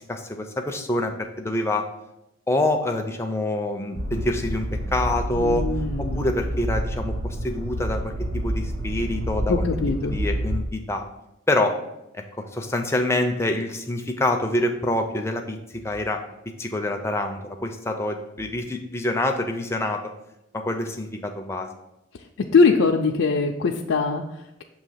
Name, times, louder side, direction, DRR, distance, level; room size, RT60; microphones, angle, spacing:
voice 1, 0.1-1.9 2.5-5.6 6.0-9.6 10.1-11.0 11.5-11.8 12.1-15.6 15.8-16.2 16.6-20.0 20.5-21.7, left 1 dB, 15° left, 4 dB, 0.5 m, -26 dB
sound 1, 4.0-10.6, equal, 55° right, 0.6 m, -28 dB
voice 2, 5.4-6.2 9.5-10.2 22.1-22.2 22.5-24.6, left 4 dB, 75° left, 0 dB, 0.4 m, -22 dB
6.6 x 2.8 x 5.6 m, 0.88 s
head